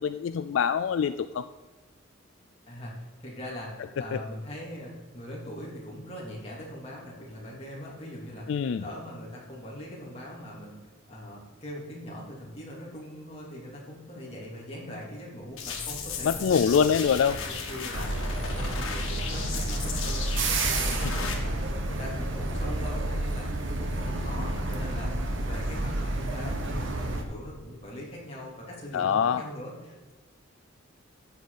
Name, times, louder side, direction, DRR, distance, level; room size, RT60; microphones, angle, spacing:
voice 1, 0.0-1.5 8.5-8.8 16.2-17.4 28.9-29.4, left 7 dB, 65° left, 11 dB, 0.3 m, -24 dB
voice 2, 2.7-17.0 17.5-25.1 25.4-30.1, left 1 dB, 30° left, -4 dB, 3.1 m, -41 dB
sound 1, 15.4-20.9, equal, 25° right, 2.0 m, -46 dB
sound 2, 15.6-21.3, left 6 dB, 85° left, 1.8 m, -36 dB
sound 3, 17.9-27.2, right 2 dB, 65° right, 1.2 m, -30 dB
13.0 x 8.0 x 4.1 m, 1.3 s
head